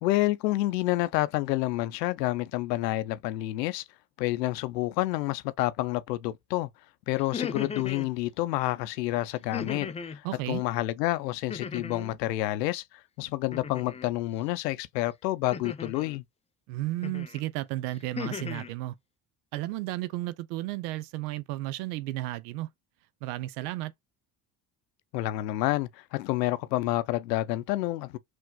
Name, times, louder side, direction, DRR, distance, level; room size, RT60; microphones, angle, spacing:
voice 1, 0.0-3.8 4.2-6.7 7.1-12.8 13.2-16.2 25.1-28.2, left 17 dB, 85° left, 0.5 m, -29 dB
sound 1, 7.2-8.1 9.5-10.2 11.5-12.2 13.5-14.1 15.5-16.2 17.0-17.4 17.9-18.7, left 6 dB, 15° left, 0.3 m, -37 dB
voice 2, 10.2-10.6 16.7-19.0 19.5-22.7 23.2-23.9, right 16 dB, 75° right, 0.5 m, -33 dB
5.9 x 2.5 x 2.3 m
hypercardioid pair, 55°, 48 cm